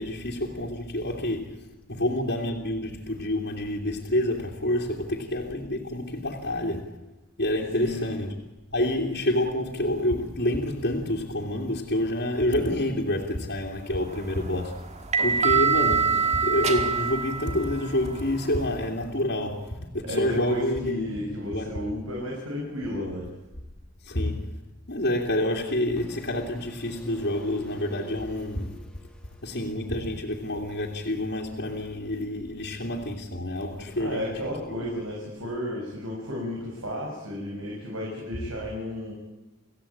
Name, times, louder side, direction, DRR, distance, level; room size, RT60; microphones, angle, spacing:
voice 1, 0.0-6.9 7.4-14.8 15.2-21.2 21.5-21.9 24.0-24.6 24.9-28.8 29.4-34.3 34.7-34.8, left 1 dB, 50° left, 2.8 m, -28 dB
voice 2, 7.7-8.2 20.0-23.3 34.0-39.1, left 1 dB, 80° right, 7.2 m, -33 dB
sound 1, 14.0-18.9, right 5 dB, 30° right, 2.0 m, -26 dB
sound 2, 26.0-29.8, equal, 5° left, 2.1 m, -43 dB
29.5 x 16.0 x 8.8 m
head